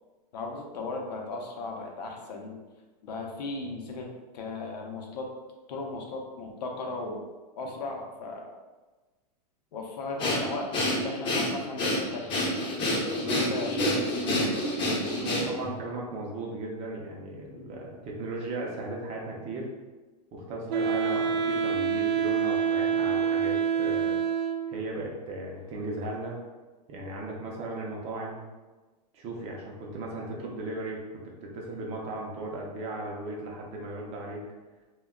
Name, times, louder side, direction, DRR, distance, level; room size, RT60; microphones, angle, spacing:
voice 1, 0.3-2.6 3.0-4.1 4.3-5.3 5.7-7.2 7.6-8.5 9.7-12.6 13.2-14.6, left 3 dB, 80° left, 1 dB, 0.6 m, -36 dB
Breathing, 10.2-15.7, left 1 dB, 25° left, 0.5 m, -28 dB
voice 2, 15.2-19.7 20.3-24.2 24.7-26.4 26.9-28.5 29.1-31.0 31.4-34.4, right 2 dB, 30° right, -1 dB, 0.5 m, -36 dB
Wind instrument woodwind instrument, 20.7-24.8, right 7 dB, 80° right, 0.4 m, -26 dB
2.2 x 2.1 x 3.6 m, 1.2 s
supercardioid pair, 140°, 21 cm